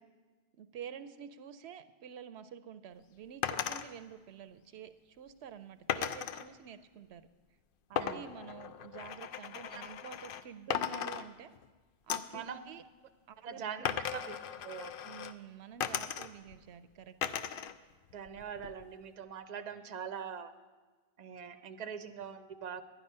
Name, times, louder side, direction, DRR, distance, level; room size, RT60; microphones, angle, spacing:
voice 1, 0.5-7.2 7.9-11.5 12.1-12.8 13.3-14.0 15.0-17.2, right 8 dB, 80° right, 12 dB, 0.8 m, -49 dB
sound 1, 3.4-3.9 5.9-6.5 8.0-10.4 10.7-11.7 12.1-12.4 13.8-15.3 15.8-16.5 17.2-17.7 18.1-18.9, left 9 dB, 65° left, 0.7 m, -37 dB
voice 2, 8.0-8.3 9.7-9.8 12.3-12.6 13.4-14.4 14.6-15.0 18.1-20.5 21.2-22.8, right 7 dB, 50° right, 9 dB, 0.7 m, -42 dB
11.0 x 10.0 x 5.4 m, 1.3 s
omnidirectional pair, 1.1 m